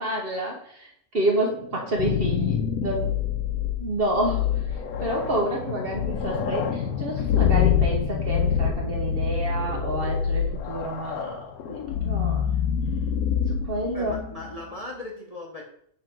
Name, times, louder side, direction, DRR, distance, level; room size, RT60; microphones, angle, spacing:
voice 1, 0.0-3.1 3.8-11.4 11.7-11.8 12.0-12.5 13.5-14.1, right 1 dB, 45° right, 0 dB, 1.2 m, -29 dB
sound 1, 1.7-14.6, left 8 dB, 85° left, 1.2 m, -26 dB
sound 2, 2.9-13.6, left 7 dB, 65° left, 1.0 m, -37 dB
voice 2, 13.9-15.7, left 2 dB, 30° left, -1 dB, 0.8 m, -38 dB
6.4 x 3.7 x 4.4 m, 0.66 s
omnidirectional pair, 1.5 m